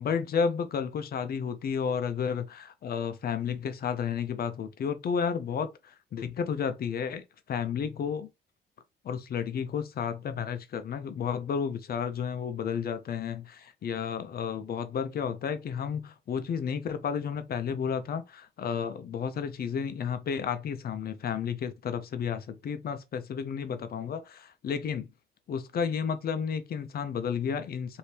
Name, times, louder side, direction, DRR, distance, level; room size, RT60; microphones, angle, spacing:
voice 1, 0.0-8.3 9.0-25.1 25.5-28.0, left 7 dB, 50° left, 0.5 m, -32 dB
3.1 x 2.7 x 2.8 m
cardioid pair, 90°, 20 cm